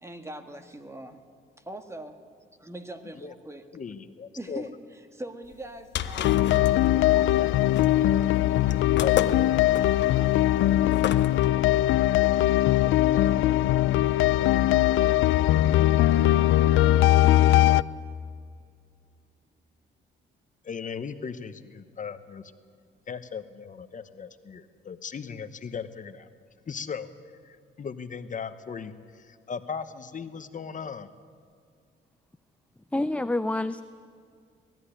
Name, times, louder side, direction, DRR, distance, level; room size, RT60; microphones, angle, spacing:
voice 1, 0.0-1.2 1.6-2.2 2.6-3.7 4.3-7.6 7.9-10.7 11.1-12.7 13.1-14.6 15.0-16.9, right 1 dB, 15° right, 7 dB, 1.6 m, -45 dB
voice 2, 3.7-4.7 9.0-9.3 20.6-22.4 23.1-26.3 26.7-27.1 27.4-31.1, left 6 dB, 40° left, 11 dB, 1.0 m, -37 dB
sound 1, 5.5-11.5, left 10 dB, 65° left, 0.9 m, -33 dB
sound 2, 6.2-17.8, left 14 dB, 80° left, 0.5 m, -21 dB
voice 3, 32.9-33.8, left 2 dB, 5° left, 12 dB, 0.4 m, -27 dB
19.0 x 13.5 x 10.0 m, 2.2 s
cardioid pair, 90°, 20 cm